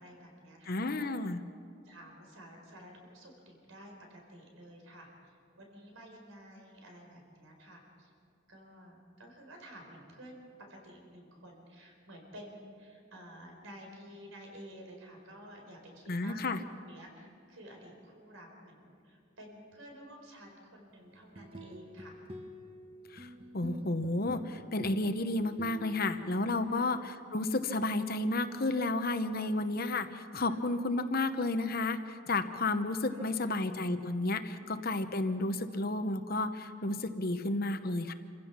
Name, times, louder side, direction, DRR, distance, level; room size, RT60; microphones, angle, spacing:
voice 1, 0.0-1.1 1.8-8.1 8.5-16.4 16.8-22.2 26.7-26.9 30.4-30.6 32.3-32.8 33.1-33.8, equal, 85° right, 1 dB, 4.7 m, -52 dB
voice 2, 0.7-1.4 16.1-16.6 23.1-38.1, left 2 dB, 50° left, 9 dB, 1.0 m, -32 dB
sound 1, 21.1-26.7, right 1 dB, 30° right, 1.4 m, -48 dB
27.5 x 16.0 x 6.0 m, 2.4 s
head